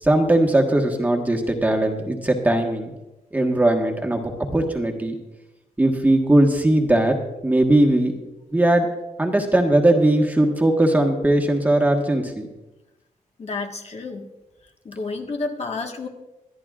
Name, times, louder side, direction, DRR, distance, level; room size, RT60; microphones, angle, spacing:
voice 1, 0.0-2.9 3.3-5.1 5.8-7.2 7.4-8.1 8.5-8.9 9.2-12.5, right 1 dB, 10° right, 2 dB, 1.4 m, -19 dB
voice 2, 13.4-14.2 14.8-16.1, left 3 dB, 50° left, 2 dB, 1.5 m, -30 dB
25.0 x 11.0 x 2.4 m, 1.0 s
wide cardioid pair, 140°, 14 cm